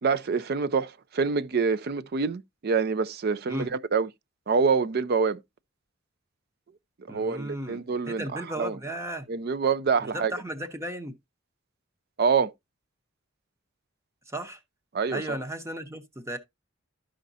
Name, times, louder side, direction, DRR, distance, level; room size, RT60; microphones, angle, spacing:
voice 1, 0.0-4.1 4.5-5.4 7.1-8.8 9.3-10.3 12.2-12.5 14.9-15.4, right 5 dB, 50° right, 0.4 m, -26 dB
voice 2, 7.1-9.3 10.0-11.2 14.3-14.6 15.1-16.4, right 1 dB, 15° right, 0.8 m, -35 dB
13.0 x 5.1 x 2.7 m
head